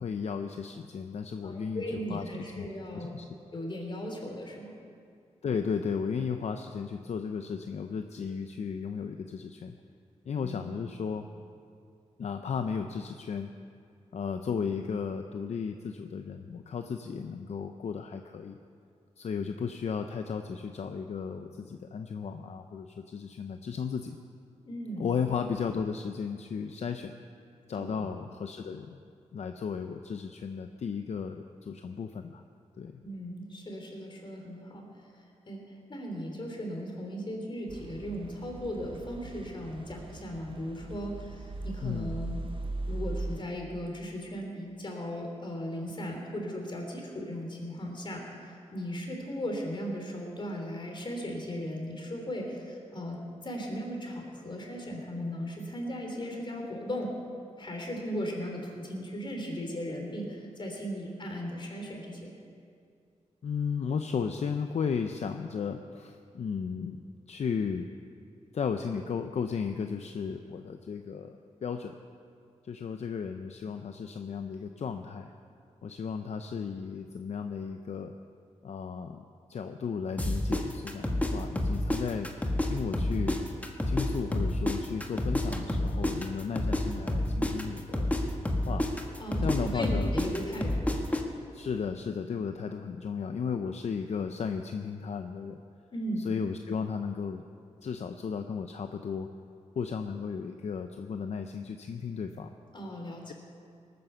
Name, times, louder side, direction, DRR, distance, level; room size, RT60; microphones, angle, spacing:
voice 1, 0.0-1.8 2.1-2.3 2.6-2.7 2.9-3.2 5.4-9.8 10.3-11.3 12.2-13.5 14.1-18.6 19.2-24.2 25.0-27.1 27.7-29.0 29.3-32.4 32.8-32.9 41.8-42.3 63.4-67.0 67.3-67.9 68.5-71.9 72.6-75.3 75.8-78.1 78.6-79.2 79.5-82.3 82.6-83.4 83.9-88.1 88.7-88.8 89.4-90.1 91.5-95.6 96.2-97.4 97.8-99.3 99.8-102.5, left 6 dB, 65° left, 6 dB, 0.6 m, -34 dB
voice 2, 1.4-3.1 3.5-4.7 10.4-10.7 24.6-25.1 27.7-28.1 33.0-34.8 35.5-35.6 35.9-42.5 42.9-53.2 53.4-57.1 57.6-62.4 89.2-90.9 95.9-96.2 102.7-103.2, equal, 40° left, 1 dB, 3.4 m, -37 dB
sound 1, 37.7-43.4, right 2 dB, 45° right, 0.9 m, -39 dB
sound 2, 80.2-82.7 82.9-86.8 87.1-91.2, left 1 dB, 10° left, 1.4 m, -29 dB
19.0 x 9.4 x 6.8 m, 2.4 s
wide cardioid pair, 90°, 12 cm